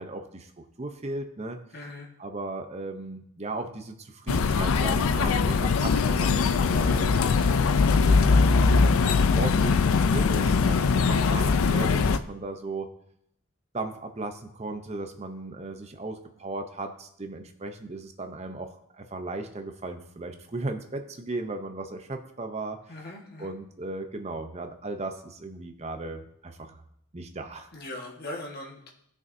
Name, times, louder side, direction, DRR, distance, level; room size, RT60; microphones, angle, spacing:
voice 1, 0.0-1.6 2.2-7.1 7.9-9.0 9.3-12.9 13.7-22.8 23.4-26.8 27.1-27.7, right 2 dB, 30° right, 6 dB, 0.7 m, -36 dB
voice 2, 1.7-2.1 22.9-23.5 27.7-28.9, left 1 dB, 45° left, -1 dB, 1.5 m, -39 dB
sound 1, 4.3-12.2, left 4 dB, 70° left, 0.4 m, -21 dB
15.0 x 6.1 x 2.7 m, 0.73 s
head